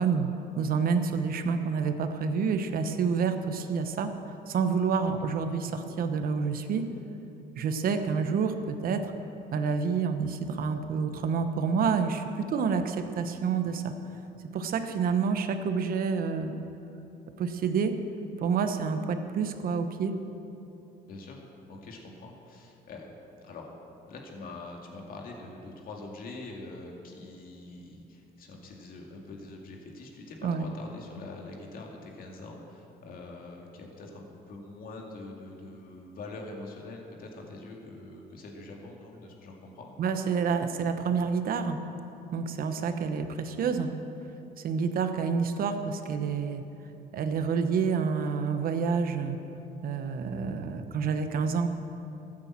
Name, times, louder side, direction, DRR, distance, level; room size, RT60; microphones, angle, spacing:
voice 1, 0.0-4.1 4.5-6.8 7.6-9.1 9.5-13.9 14.5-16.5 17.4-17.9 18.4-20.2 30.4-30.7 40.0-41.8 42.3-43.9 44.6-46.6 47.1-49.4 49.8-51.7, right 5 dB, 60° right, 8 dB, 1.1 m, -28 dB
voice 2, 21.1-21.4 21.7-23.1 23.4-23.7 24.1-39.9, left 2 dB, 60° left, 0 dB, 2.3 m, -44 dB
14.0 x 8.9 x 7.5 m, 2.9 s
cardioid pair, 110°, 17 cm